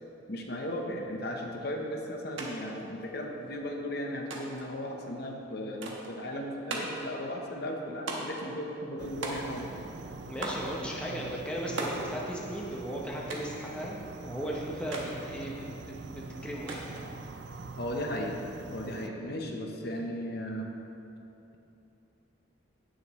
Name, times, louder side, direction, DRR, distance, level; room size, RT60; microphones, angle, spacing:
voice 1, 0.3-9.7 17.8-20.7, equal, 50° left, 1 dB, 0.9 m, -36 dB
sound 1, 2.4-2.5 2.8-3.5 4.3-4.7 5.8-6.1 6.7-7.1 8.1-8.5 9.2-9.8 10.4-10.7 11.8-12.1 13.3-13.6 14.9-15.1 16.7-17.1, right 2 dB, 75° right, 1.3 m, -37 dB
sound 2, 9.0-19.1, right 3 dB, 60° right, 0.4 m, -44 dB
voice 2, 10.3-14.0 14.2-16.9, equal, 5° left, -3 dB, 0.8 m, -36 dB
16.5 x 6.4 x 3.1 m, 2.9 s
head